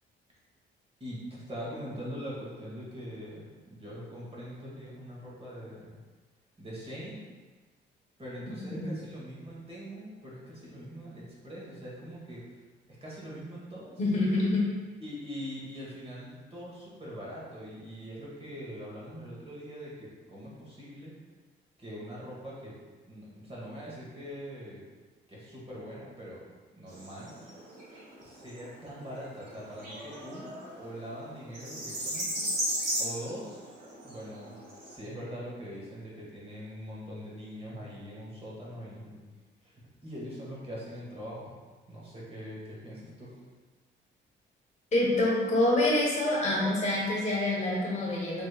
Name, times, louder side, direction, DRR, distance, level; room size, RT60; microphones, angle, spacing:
voice 1, 1.0-6.0 6.6-7.2 8.2-12.5 12.9-14.0 15.0-21.1 21.8-22.8 23.0-24.8 25.3-26.4 26.7-27.4 28.2-32.5 33.0-33.6 34.0-39.2 39.6-41.5 41.9-43.4, equal, 30° right, -6 dB, 1.3 m, -42 dB
voice 2, 14.0-14.6 44.9-48.4, left 1 dB, 35° left, -4 dB, 1.2 m, -26 dB
sound 1, 26.9-34.9, equal, 50° right, 1.5 m, -37 dB
3.4 x 3.2 x 2.4 m, 1.3 s
cardioid pair, 90°, 20 cm